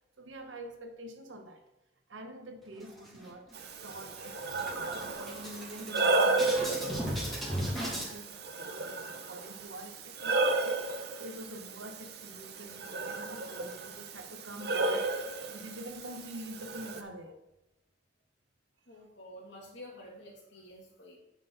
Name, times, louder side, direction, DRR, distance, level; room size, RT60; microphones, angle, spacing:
voice 1, 0.2-1.7 2.1-4.5 4.8-10.6 11.2-17.4 18.9-19.0, right 1 dB, 85° right, 1.2 m, -46 dB
sound 1, 2.8-3.5 3.9-4.0 4.3-8.1, equal, ahead, 2.4 m, -37 dB
Breathing, 3.5-17.0, right 2 dB, 55° right, 0.8 m, -33 dB
voice 2, 18.9-21.2, left 1 dB, 70° left, 2.8 m, -49 dB
9.3 x 6.4 x 4.1 m
head